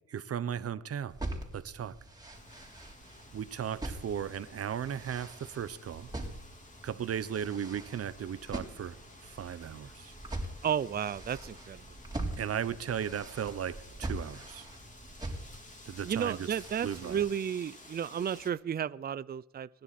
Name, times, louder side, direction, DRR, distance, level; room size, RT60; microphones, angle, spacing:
voice 1, 0.1-1.1 1.5-1.9 3.3-6.1 6.8-9.0 9.2-10.1 12.4-14.7 15.9-16.5 16.8-17.2, right 8 dB, 50° right, 1.1 m, -36 dB
sound 1, 1.1-17.3, right 1 dB, 15° right, 4.1 m, -43 dB
Wind, 2.3-18.5, left 2 dB, 25° left, 3.6 m, -54 dB
voice 2, 10.6-11.8 16.0-19.7, right 8 dB, 30° right, 0.5 m, -33 dB
26.0 x 10.5 x 4.3 m
cardioid pair, 90°, 30 cm